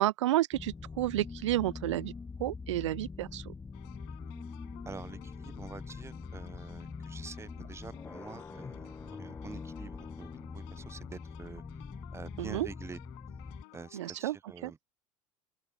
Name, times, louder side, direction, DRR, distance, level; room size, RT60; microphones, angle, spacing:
voice 1, 0.0-2.1 2.4-3.5 12.4-12.7 13.9-14.4 14.6-14.7, right 15 dB, 60° right, 0.4 m, -30 dB
sound 1, 0.5-13.6, left 4 dB, 15° left, 1.1 m, -44 dB
sound 2, 3.7-14.2, left 38 dB, 50° left, 7.1 m, -55 dB
voice 2, 4.8-11.6 12.1-13.0 13.7-14.8, right 5 dB, 15° right, 0.8 m, -47 dB
open air
figure-of-eight pair, 75°, 17 cm